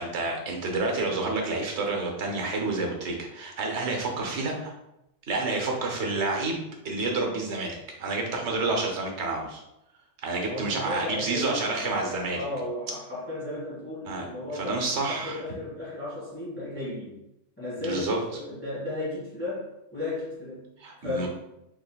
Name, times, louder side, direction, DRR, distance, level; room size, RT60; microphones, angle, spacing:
voice 1, 0.0-4.7 5.3-6.6 6.8-9.6 10.2-12.4 14.1-14.2 14.5-15.4 17.8-18.2 20.8-21.3, right 3 dB, 80° right, 1 dB, 1.1 m, -29 dB
voice 2, 10.4-17.2 17.6-20.7 21.0-21.3, left 2 dB, 10° left, -9 dB, 1.3 m, -35 dB
3.7 x 3.1 x 2.3 m, 0.88 s
omnidirectional pair, 1.2 m